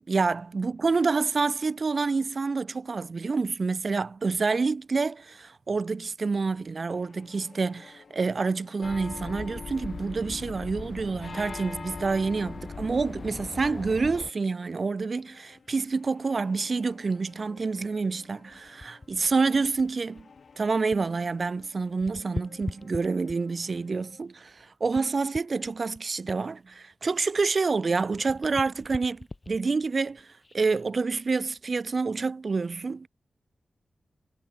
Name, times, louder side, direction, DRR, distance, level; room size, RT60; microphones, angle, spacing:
voice 1, 0.1-20.3 20.6-33.1, right 4 dB, 50° right, 0.4 m, -28 dB
sound 1, 6.6-24.2, left 5 dB, 70° left, 2.5 m, -56 dB
sound 2, 8.8-14.3, left 4 dB, 55° left, 1.2 m, -39 dB
sound 3, 18.5-21.2 21.5-23.7 24.2-27.8 28.0-30.8 31.4-31.6, left 2 dB, 30° left, 0.6 m, -43 dB
wide cardioid pair, 85°, 0 cm